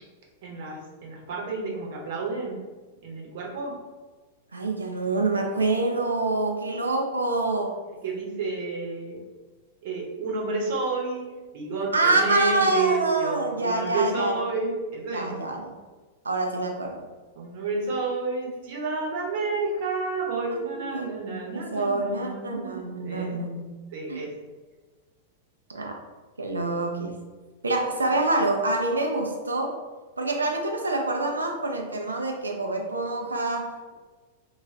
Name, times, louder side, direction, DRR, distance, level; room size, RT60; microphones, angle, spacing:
voice 1, 0.4-2.6 3.0-3.8 8.0-9.2 9.8-11.2 11.5-15.3 17.3-23.4 23.9-24.3, right 3 dB, 55° right, -2 dB, 0.8 m, -30 dB
voice 2, 4.5-7.8 11.9-14.3 15.1-15.8 16.2-17.0 20.5-21.1 21.5-23.7 24.1-24.2 25.7-25.9 26.4-27.2 27.6-29.8 30.2-33.9, right 2 dB, 80° right, 2 dB, 0.4 m, -26 dB
2.4 x 2.3 x 3.2 m, 1.3 s
figure-of-eight pair, 95°, 0 cm